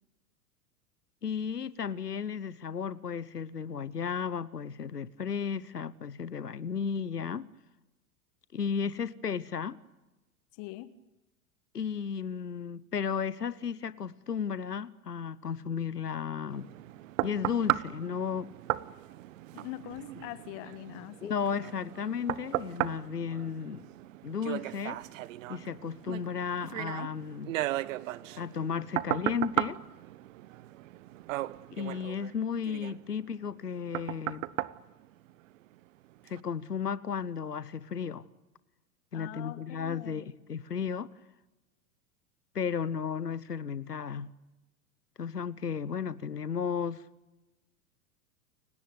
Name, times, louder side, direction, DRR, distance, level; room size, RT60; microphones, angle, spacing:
voice 1, 1.2-7.5 8.5-9.8 11.7-16.7 17.2-18.5 21.2-23.9 24.2-25.0 25.5-27.6 28.4-29.8 31.7-34.5 36.2-38.3 39.1-41.1 42.5-44.3 45.2-47.0, left 7 dB, 90° left, 1.0 m, -34 dB
voice 2, 10.5-11.0 19.5-21.3 39.1-40.3, left 14 dB, 45° left, 1.3 m, -43 dB
sound 1, 16.5-35.8 36.3-36.4, right 16 dB, 55° right, 1.1 m, -36 dB
29.5 x 17.5 x 9.4 m
figure-of-eight pair, 95°, 46 cm